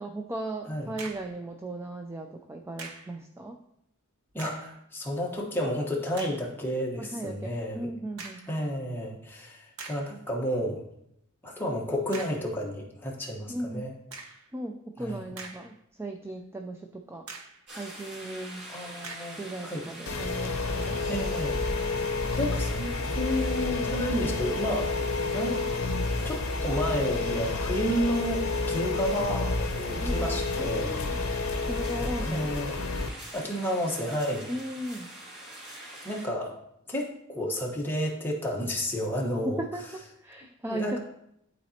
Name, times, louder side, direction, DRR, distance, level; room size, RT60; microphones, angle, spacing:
voice 1, 0.0-3.6 7.0-8.4 13.5-13.9 14.5-17.3 17.7-18.6 19.4-21.0 30.0-31.2 31.7-32.5 34.5-35.1 39.6-39.9 40.2-41.0, right 1 dB, 10° right, 4 dB, 0.3 m, -37 dB
sound 1, 1.0-1.4 2.8-3.2 4.3-4.8 5.4-5.5 6.1-6.5 8.2-8.6 9.2-9.3 9.8-10.2 12.1-12.5 14.1-14.5 15.1-15.9 16.3-16.4 17.3-17.6 19.0-19.4, right 4 dB, 75° right, 0.9 m, -43 dB
voice 2, 4.3-7.9 8.5-10.8 11.4-13.9 15.0-15.2 18.7-19.8 21.1-24.9 25.2-25.9 26.2-30.9 31.2-31.4 32.2-32.7 33.3-34.5 36.0-36.5 36.9-39.6 40.6-41.0, equal, 10° left, -2 dB, 1.2 m, -31 dB
sound 2, 17.7-36.3, right 1 dB, 55° right, 2.4 m, -44 dB
sound 3, 20.1-33.1, left 3 dB, 70° left, 0.7 m, -30 dB
11.5 x 4.1 x 2.8 m, 0.77 s
head